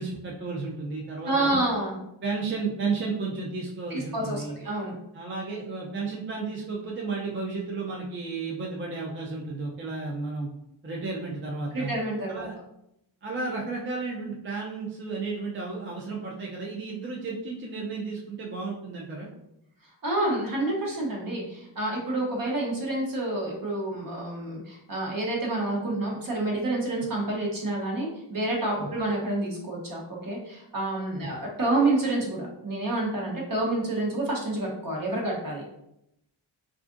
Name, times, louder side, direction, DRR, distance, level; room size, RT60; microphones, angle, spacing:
voice 1, 0.0-1.6 2.2-4.6 5.1-10.5 10.8-11.9 12.3-12.6 13.2-19.3 28.8-28.9 31.2-31.3, right 4 dB, 30° right, -3 dB, 0.4 m, -33 dB
voice 2, 1.2-2.0 3.9-4.9 11.7-12.4 20.0-35.6, right 2 dB, 45° right, -2 dB, 0.9 m, -28 dB
3.5 x 2.4 x 2.5 m, 0.81 s
wide cardioid pair, 125°, 46 cm